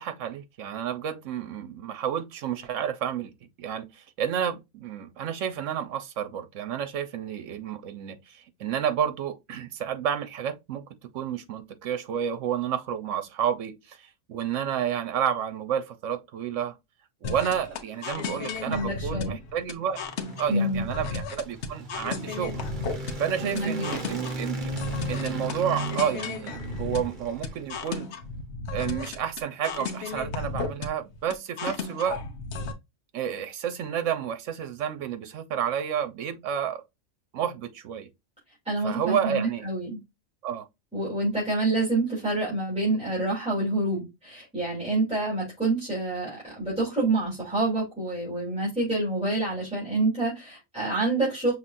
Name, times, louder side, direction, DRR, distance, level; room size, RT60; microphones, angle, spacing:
voice 1, 0.0-3.3 3.6-10.8 11.1-16.8 17.2-20.0 20.4-22.6 23.2-24.7 25.1-28.1 28.7-32.2 33.1-36.8 37.3-38.1 38.8-39.6 40.4-40.6, right 9 dB, 80° right, 1.1 m, -30 dB
sound 1, 17.2-32.7, left 4 dB, 65° left, 1.1 m, -34 dB
voice 2, 18.6-19.3 20.5-20.8 23.4-23.8 38.6-40.0 40.9-51.5, right 2 dB, 5° right, 3.3 m, -27 dB
sound 2, 19.6-28.0, right 1 dB, 40° right, 1.3 m, -36 dB
5.9 x 3.2 x 2.6 m
omnidirectional pair, 1.3 m